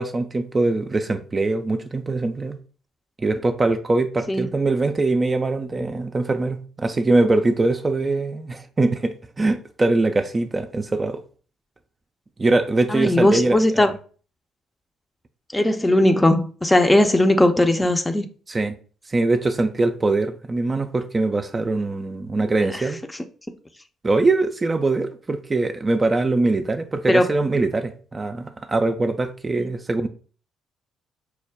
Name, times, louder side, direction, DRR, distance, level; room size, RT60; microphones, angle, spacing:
voice 1, 0.0-2.6 3.2-11.2 12.4-13.9 18.5-18.8 19.1-23.0 24.0-30.1, right 2 dB, 30° right, 0.4 m, -22 dB
voice 2, 12.9-13.9 15.5-18.3 22.7-22.8 27.1-27.3 29.6-29.7, left 1 dB, 15° left, 0.5 m, -18 dB
4.6 x 2.1 x 3.4 m
hypercardioid pair, 50°, 0 cm